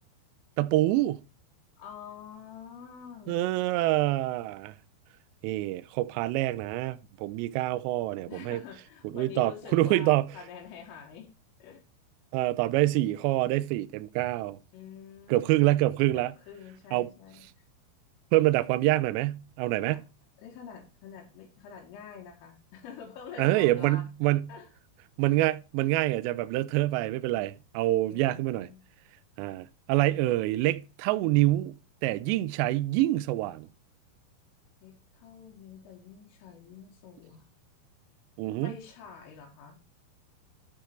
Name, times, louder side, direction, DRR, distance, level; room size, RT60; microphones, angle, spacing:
voice 1, 0.6-1.2 3.3-4.7 5.4-8.6 9.0-10.3 12.3-14.6 15.3-16.3 16.9-17.1 18.3-20.0 23.4-24.5 25.2-28.7 29.4-31.7 32.0-33.7 38.4-38.7, right 16 dB, 85° right, 2.5 m, -26 dB
voice 2, 1.8-3.5 8.3-11.3 11.6-11.8 14.7-15.5 16.1-17.6 19.8-20.0 20.4-24.1 24.5-24.7 28.1-28.8 34.8-37.5 38.6-39.8, left 7 dB, 90° left, 4.2 m, -46 dB
12.0 x 4.5 x 4.4 m
omnidirectional pair, 5.6 m